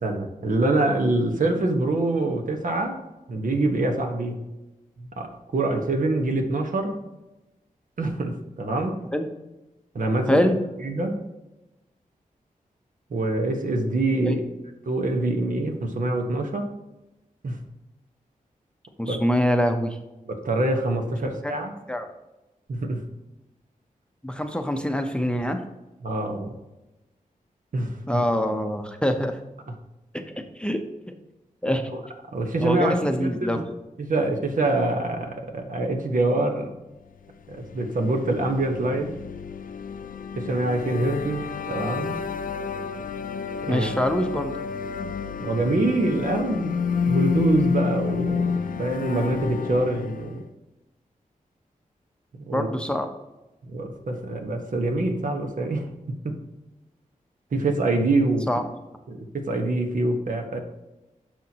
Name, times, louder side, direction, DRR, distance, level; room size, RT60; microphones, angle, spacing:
voice 1, 0.0-3.0 3.3-4.4 5.0-7.0 8.0-8.9 9.9-10.4 10.8-11.2 13.1-14.4 14.8-16.7 17.4-17.6 19.1-19.2 20.2-21.7 22.7-23.0 26.0-26.5 27.7-28.2 31.9-32.0 32.3-33.6 34.0-36.7 37.5-39.1 40.4-42.2 43.6-43.9 45.4-46.8 47.1-50.4 52.3-52.7 53.6-55.9 56.2-56.4 57.5-58.5 59.1-60.6, right 2 dB, 65° right, 4 dB, 1.2 m, -25 dB
voice 2, 10.3-10.6 14.3-14.4 19.0-20.0 21.9-22.1 24.2-25.6 28.1-29.4 30.1-30.8 31.6-31.8 32.6-33.6 43.7-44.5 52.5-53.1 58.5-58.6, equal, 5° left, 5 dB, 0.7 m, -24 dB
sound 1, 37.5-50.5, left 6 dB, 70° left, 0.5 m, -29 dB
10.0 x 6.4 x 2.9 m, 0.99 s
wide cardioid pair, 90°, 14 cm